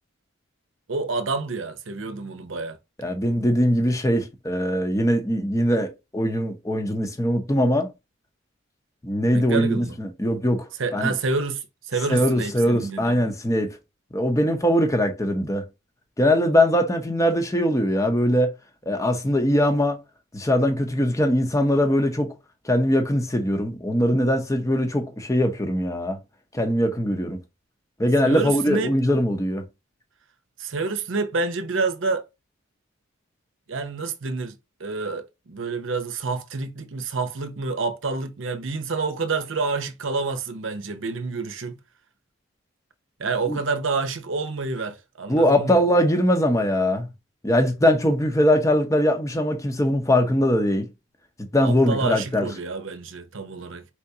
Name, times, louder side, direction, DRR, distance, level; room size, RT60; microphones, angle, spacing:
voice 1, 0.9-2.8 9.3-10.0 10.8-13.1 28.2-29.0 30.6-32.2 33.7-41.8 43.2-45.8 51.6-53.9, right 4 dB, 70° right, 0.7 m, -28 dB
voice 2, 3.0-7.9 9.0-10.7 10.9-11.1 12.1-13.8 14.1-15.6 16.2-18.5 18.9-20.0 20.3-22.3 22.6-26.2 26.5-27.4 28.0-29.6 43.5-43.6 45.3-47.1 47.4-50.9 51.5-52.5, equal, 15° left, 0.7 m, -21 dB
4.7 x 3.4 x 2.7 m
head